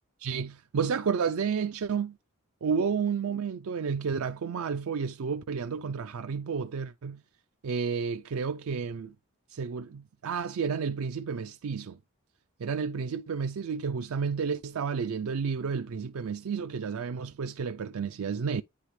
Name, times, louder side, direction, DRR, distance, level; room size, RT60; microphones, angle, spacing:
voice 1, 0.2-2.2 2.6-7.2 7.6-9.1 9.5-12.0 12.6-18.6, right 6 dB, 70° right, 0.4 m, -31 dB
9.7 x 3.3 x 3.2 m
head